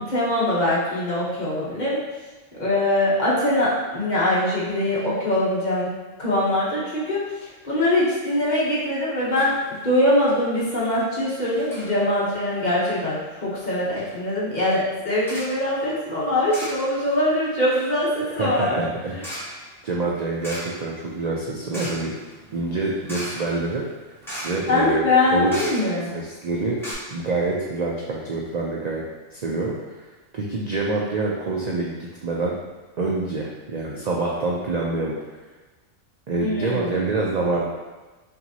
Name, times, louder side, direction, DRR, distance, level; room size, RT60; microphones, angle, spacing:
voice 1, 0.0-2.0 2.6-5.9 6.2-9.5 9.8-18.8 24.7-26.1 36.4-37.1, left 1 dB, 40° left, -7 dB, 1.1 m, -22 dB
sound 1, 8.7-9.0 9.3-9.5 9.8-9.9 10.3-10.7 11.5-11.9 12.7-13.0 13.5-13.6 14.0-14.2 15.2-15.6 16.5-17.2 17.4-26.2 26.5-26.6 26.8-26.9, equal, ahead, 1.0 m, -38 dB
voice 2, 18.2-19.1 19.8-22.1 22.5-23.8 24.4-25.6 26.1-26.8 27.1-29.0 29.3-30.1 30.3-32.6 33.0-35.1 36.3-37.7, right 3 dB, 55° right, -3 dB, 0.4 m, -26 dB
5.8 x 2.6 x 2.8 m, 1.2 s
omnidirectional pair, 1.3 m